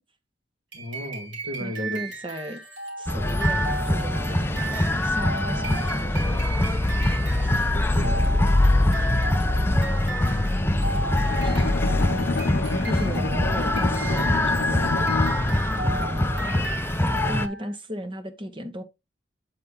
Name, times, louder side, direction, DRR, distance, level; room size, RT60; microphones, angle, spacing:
voice 1, 0.7-2.0 7.3-8.6 10.2-10.9, left 1 dB, 70° right, 2.5 m, -36 dB
sound 1, 0.7-17.8, right 3 dB, 90° right, 2.7 m, -35 dB
voice 2, 1.6-2.6 3.0-6.6 7.4-7.5 9.3-9.9 11.2-11.8 12.8-15.1 15.5-18.8, equal, 30° right, 1.0 m, -36 dB
sound 2, 3.1-17.5, left 1 dB, 15° left, 0.5 m, -23 dB
Bowed string instrument, 11.3-15.7, left 3 dB, 70° left, 0.5 m, -30 dB
8.4 x 4.2 x 3.6 m
head